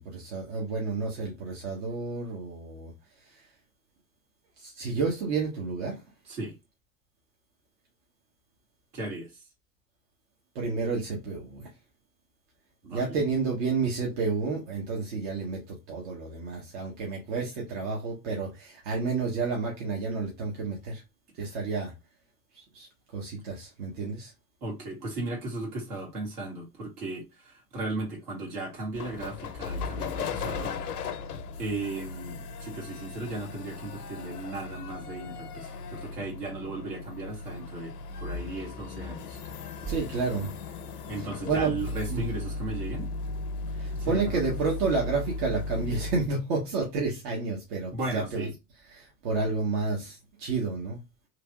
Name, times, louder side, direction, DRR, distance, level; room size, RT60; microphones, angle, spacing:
voice 1, 0.0-2.9 4.6-6.0 10.5-11.7 12.9-21.0 21.4-21.9 22.5-22.9 23.1-24.3 39.8-40.5 41.5-41.7 42.1-42.2 43.7-48.5 48.9-51.0, right 4 dB, 50° right, 1.2 m, -30 dB
voice 2, 8.9-9.3 12.8-13.2 24.6-30.8 31.6-37.9 38.2-39.4 41.1-43.1 44.0-44.4 47.9-48.5, right 2 dB, 70° right, 1.9 m, -36 dB
sound 1, 28.9-46.3, left 3 dB, 70° left, 0.7 m, -36 dB
3.2 x 2.9 x 2.3 m
figure-of-eight pair, 85°, 47 cm